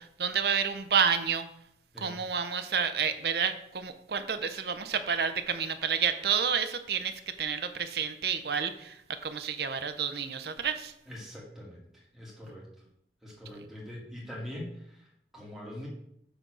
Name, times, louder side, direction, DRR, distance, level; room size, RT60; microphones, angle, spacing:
voice 1, 0.0-1.5 2.0-10.9, right 7 dB, 60° right, 9 dB, 0.6 m, -30 dB
voice 2, 11.1-12.7 13.2-15.9, left 1 dB, ahead, -5 dB, 2.2 m, -43 dB
6.9 x 3.9 x 6.1 m, 0.73 s
head